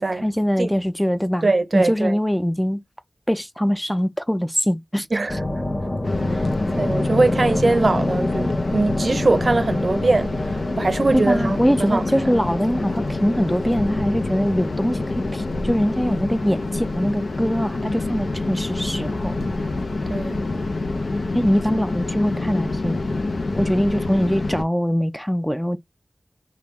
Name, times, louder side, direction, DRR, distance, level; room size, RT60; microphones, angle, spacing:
voice 1, 0.1-2.8 3.3-5.1 11.1-19.4 21.3-23.0 23.5-25.8, equal, 5° left, 0.4 m, -22 dB
voice 2, 1.4-2.2 5.1-5.4 6.3-6.5 6.8-12.3 20.1-20.4, right 3 dB, 65° right, 0.5 m, -22 dB
sound 1, 5.3-19.7, left 1 dB, 35° left, 0.8 m, -29 dB
sound 2, 6.0-24.6, left 2 dB, 90° left, 0.5 m, -27 dB
3.4 x 2.3 x 3.0 m
wide cardioid pair, 55°, 0 cm